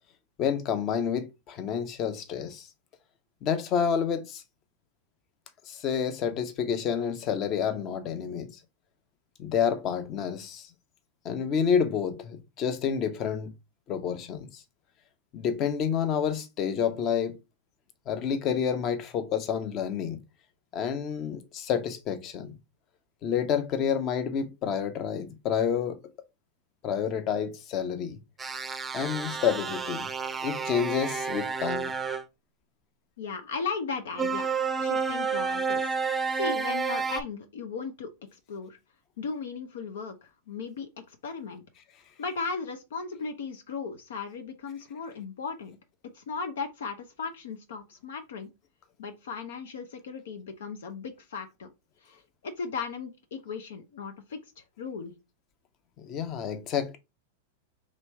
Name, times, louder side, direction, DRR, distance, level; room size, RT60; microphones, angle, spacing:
voice 1, 0.4-2.7 3.4-4.4 5.7-8.5 9.4-10.7 11.2-13.5 13.9-14.6 15.3-17.4 18.1-20.2 20.7-22.5 23.2-26.0 26.8-28.2 28.9-30.1 30.4-31.9 56.0-57.0, left 7 dB, 40° left, 0.9 m, -29 dB
sound 1, 28.4-32.2 34.2-37.2, right 5 dB, 15° right, 0.5 m, -30 dB
voice 2, 33.2-34.5 34.8-35.9 36.4-38.8 39.2-41.6 42.2-45.8 46.1-48.5 49.0-51.7 52.0-55.1, left 5 dB, 70° left, 0.7 m, -36 dB
3.1 x 3.1 x 4.6 m
hypercardioid pair, 100°, 0 cm